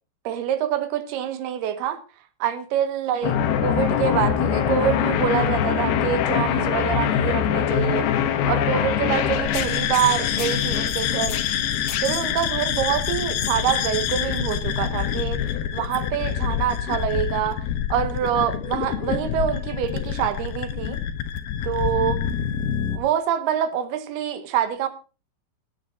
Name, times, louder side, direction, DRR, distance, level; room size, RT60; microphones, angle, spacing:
voice 1, 0.2-2.0 2.4-8.1 8.5-11.4 12.0-15.4 15.7-17.6 17.9-21.0 21.6-22.2 22.9-24.9, right 10 dB, 80° right, 3.0 m, -25 dB
sound 1, 3.2-23.0, left 9 dB, 75° left, 3.0 m, -24 dB
19.0 x 8.6 x 4.2 m
omnidirectional pair, 4.7 m